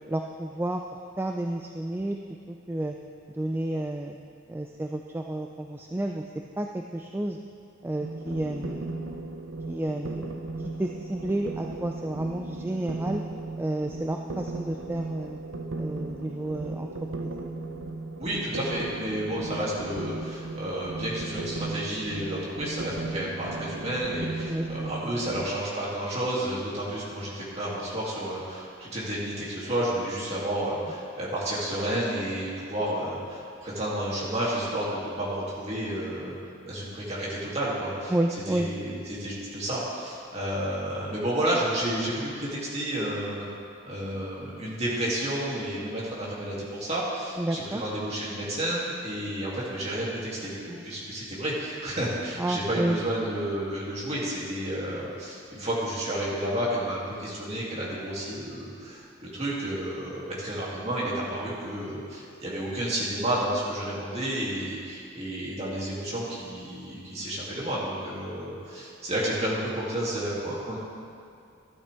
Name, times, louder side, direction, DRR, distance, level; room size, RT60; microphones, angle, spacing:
voice 1, 0.1-2.2 2.5-3.0 3.3-4.2 4.5-6.2 6.6-7.4 7.8-8.9 9.7-10.3 10.6-13.2 13.6-15.4 15.8-16.9 17.2-17.3 24.4-25.3 38.1-38.7 47.4-47.8 52.4-53.0, right 1 dB, 10° right, 2 dB, 0.3 m, -31 dB
sound 1, 8.0-25.5, right 2 dB, 80° right, 0.8 m, -36 dB
voice 2, 18.2-36.3 36.7-38.1 38.5-38.9 39.2-43.5 43.9-70.8, right 1 dB, 35° right, -6 dB, 2.6 m, -31 dB
13.0 x 11.5 x 3.5 m, 2.4 s
head